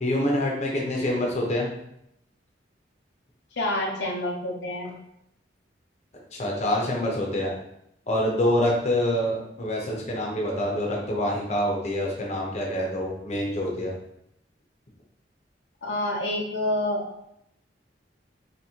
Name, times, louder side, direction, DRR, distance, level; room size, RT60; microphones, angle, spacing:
voice 1, 0.0-1.7 6.4-7.5 8.1-13.9, left 1 dB, 40° left, -1 dB, 0.8 m, -26 dB
voice 2, 3.6-4.9 15.8-17.2, left 1 dB, 85° left, -1 dB, 0.7 m, -28 dB
4.4 x 2.9 x 2.8 m, 0.78 s
head